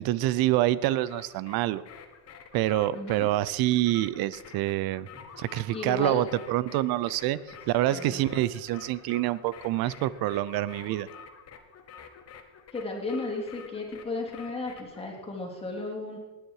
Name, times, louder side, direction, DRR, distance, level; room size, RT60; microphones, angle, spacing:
voice 1, 0.0-1.8 2.5-5.1 5.4-7.4 7.7-11.1, right 15 dB, 60° right, 19 dB, 0.7 m, -26 dB
sound 1, 0.9-15.0, left 7 dB, 35° left, 1.5 m, -49 dB
voice 2, 2.9-3.3 5.1-5.2 5.7-6.2 7.9-8.2 12.7-16.2, left 2 dB, 15° left, -1 dB, 3.4 m, -34 dB
19.0 x 9.6 x 4.8 m, 1.2 s
cardioid pair, 135°, 42 cm